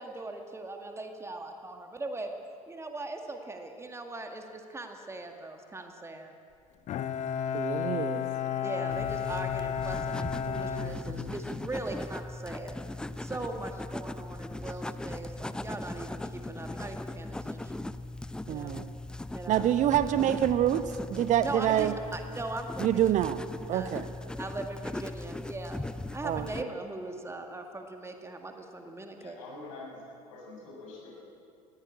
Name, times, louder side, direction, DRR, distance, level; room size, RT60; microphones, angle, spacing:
voice 1, 0.0-2.3 2.7-6.3 8.6-12.8 13.2-17.8 18.5-18.8 19.3-19.7 21.4-23.0 23.7-23.9 24.4-25.8 26.1-29.4, right 2 dB, 15° right, 4 dB, 1.9 m, -40 dB
Bowed string instrument, 6.9-11.7, left 8 dB, 40° left, 1.2 m, -33 dB
voice 2, 7.5-8.3 18.5-18.9 19.5-21.9 22.8-23.4 23.7-24.1 26.2-26.7, right 11 dB, 40° right, 12 dB, 1.0 m, -27 dB
sound 1, 8.9-26.6, left 2 dB, 5° left, 0.6 m, -39 dB
voice 3, 29.2-31.3, left 2 dB, 65° left, -2 dB, 7.0 m, -45 dB
20.0 x 16.0 x 8.9 m, 2.5 s
figure-of-eight pair, 65°, 18 cm